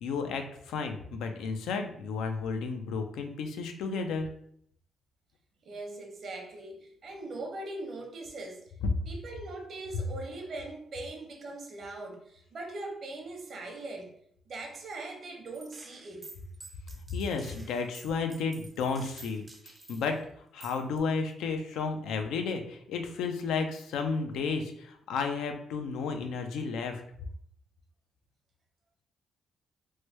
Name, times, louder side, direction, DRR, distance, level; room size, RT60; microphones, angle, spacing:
voice 1, 0.0-4.3 17.1-20.2 20.5-27.0, left 5 dB, 85° left, 5 dB, 0.4 m, -32 dB
voice 2, 5.6-8.6 9.1-14.1 14.5-16.3, right 2 dB, 55° right, 2 dB, 0.8 m, -41 dB
Gunshot gunfire, 15.5-20.2 20.6-21.0, right 2 dB, 20° right, 0.4 m, -51 dB
3.1 x 2.1 x 3.0 m, 0.67 s
cardioid pair, 90°, 0 cm